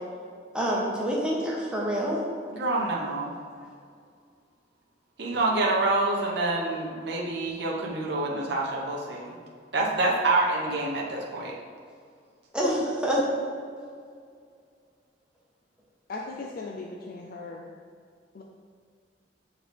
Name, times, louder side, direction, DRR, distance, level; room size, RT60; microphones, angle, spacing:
voice 1, 0.5-2.2 3.6-3.7 12.5-13.2, equal, 5° right, -4 dB, 1.1 m, -27 dB
voice 2, 2.5-3.3 5.2-9.4 9.7-11.5, right 2 dB, 65° right, -3 dB, 0.9 m, -27 dB
voice 3, 16.1-17.7 18.3-18.4, left 3 dB, 55° left, 0 dB, 0.4 m, -38 dB
8.2 x 3.9 x 3.3 m, 2.2 s
head